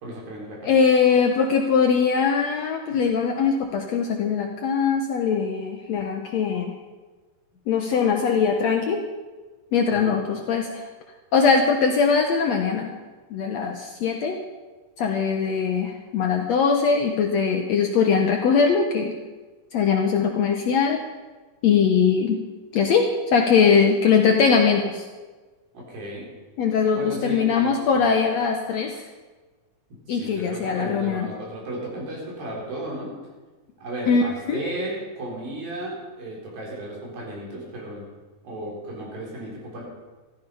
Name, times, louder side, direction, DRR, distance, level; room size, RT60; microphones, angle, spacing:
voice 1, 0.0-0.7 2.9-3.0 9.9-10.2 25.7-26.3 26.9-28.2 30.1-33.1 33.8-38.0 38.4-39.8, right 1 dB, 80° right, -3 dB, 5.8 m, -34 dB
voice 2, 0.6-6.8 7.7-9.0 9.7-10.8 11.3-12.9 13.3-14.4 15.0-19.2 19.7-21.0 21.6-22.4 22.7-25.0 26.6-29.0 30.1-31.3 34.1-34.6, left 6 dB, 70° left, 2 dB, 1.7 m, -21 dB
14.0 x 13.5 x 5.5 m, 1.3 s
omnidirectional pair, 4.1 m